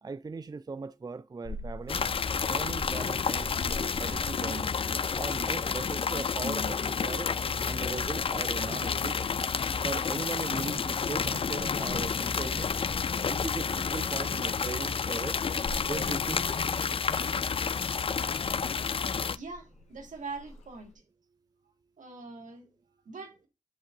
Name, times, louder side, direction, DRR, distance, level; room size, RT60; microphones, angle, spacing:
voice 1, 0.0-2.1 2.5-4.7 5.2-7.3 7.6-9.2 9.8-12.7 13.3-15.4 15.8-16.5, right 4 dB, 30° right, 0.4 m, -38 dB
Purr / Meow, 1.4-20.9, left 1 dB, 65° left, 2.2 m, -48 dB
sound 1, 1.9-19.4, left 6 dB, 45° left, 0.4 m, -30 dB
voice 2, 19.3-20.9 22.0-23.5, right 4 dB, 85° right, 1.9 m, -43 dB
10.0 x 3.4 x 3.8 m
cardioid pair, 50°, 13 cm